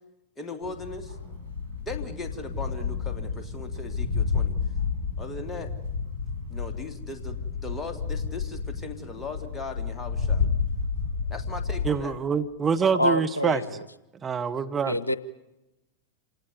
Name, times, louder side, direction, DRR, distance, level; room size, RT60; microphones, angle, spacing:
voice 1, 0.4-1.2 1.8-4.5 5.2-5.7 6.5-10.5 11.3-12.2, left 3 dB, 15° left, 4 dB, 3.1 m, -38 dB
sound 1, 0.6-11.9, left 5 dB, 80° right, 5.8 m, -30 dB
voice 2, 11.8-13.6 14.2-15.0, right 6 dB, 20° right, 8 dB, 1.2 m, -25 dB
voice 3, 13.0-13.6 14.9-15.2, left 1 dB, 80° left, 17 dB, 0.8 m, -25 dB
27.5 x 19.0 x 9.7 m, 0.96 s
figure-of-eight pair, 90°, 0 cm